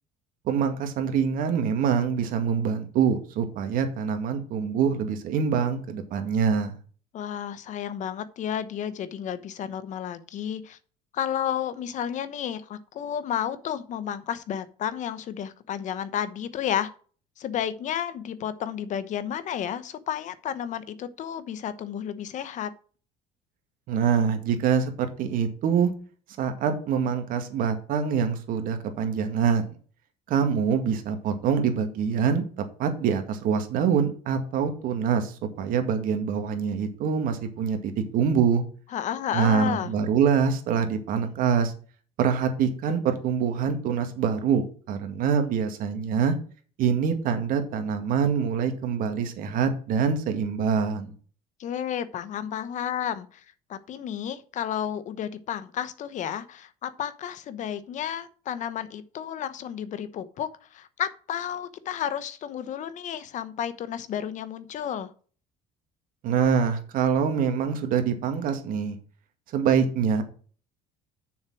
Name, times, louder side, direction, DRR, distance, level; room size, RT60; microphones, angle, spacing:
voice 1, 0.5-6.8 23.9-25.9 26.4-29.6 30.3-32.4 32.8-38.6 39.3-41.7 42.2-46.3 46.8-51.1 66.2-69.0 69.5-70.2, right 7 dB, 65° right, 7 dB, 2.1 m, -25 dB
voice 2, 7.1-10.8 11.1-16.9 17.4-22.7 38.9-39.9 51.6-53.4 53.7-65.1, left 9 dB, 55° left, 14 dB, 1.0 m, -32 dB
7.1 x 6.3 x 6.2 m, 0.41 s
cardioid pair, 105°, 15 cm